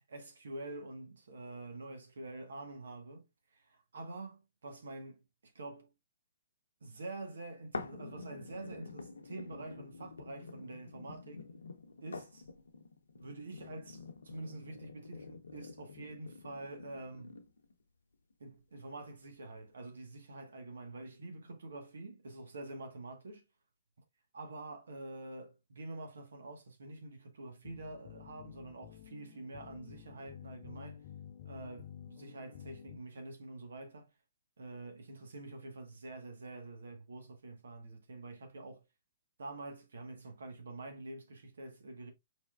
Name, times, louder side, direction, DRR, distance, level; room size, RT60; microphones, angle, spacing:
voice 1, 0.1-5.9 6.8-11.4 12.0-12.4 13.1-17.4 18.4-23.4 24.3-31.0 31.4-34.1 34.6-38.8 39.4-42.1, right 2 dB, 75° right, 1.3 m, -47 dB
sound 1, 7.7-17.7 18.3-18.4, left 4 dB, 85° left, 0.7 m, -48 dB
sound 2, 27.6-33.0, left 10 dB, 45° left, 0.5 m, -51 dB
4.6 x 4.2 x 2.4 m
hypercardioid pair, 130°, 0 cm